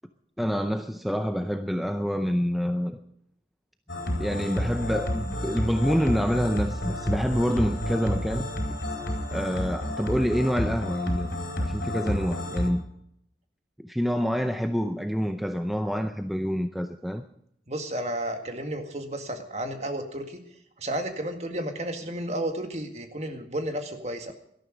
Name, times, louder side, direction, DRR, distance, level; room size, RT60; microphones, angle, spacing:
voice 1, 0.4-3.0 4.2-8.5 9.3-11.3 11.6-12.8 13.8-17.2, equal, ahead, 0.6 m, -27 dB
sound 1, 3.9-12.7, left 1 dB, 75° left, 4.2 m, -30 dB
voice 2, 17.7-20.4 20.8-24.3, right 1 dB, 40° right, 2.0 m, -32 dB
18.0 x 13.0 x 5.2 m
head